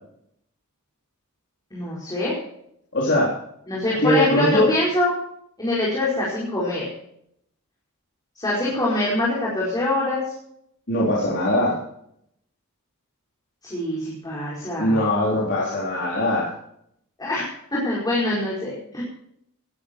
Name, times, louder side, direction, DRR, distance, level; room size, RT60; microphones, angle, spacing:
voice 1, 1.7-2.4 3.7-5.1 5.6-6.8 8.3-10.3 13.6-15.0 17.2-19.0, left 1 dB, 20° left, -6 dB, 5.0 m, -24 dB
voice 2, 2.9-3.3 4.0-4.7 10.9-11.8 14.8-16.5, left 1 dB, 55° left, -6 dB, 3.7 m, -21 dB
17.5 x 12.0 x 4.6 m, 0.72 s
head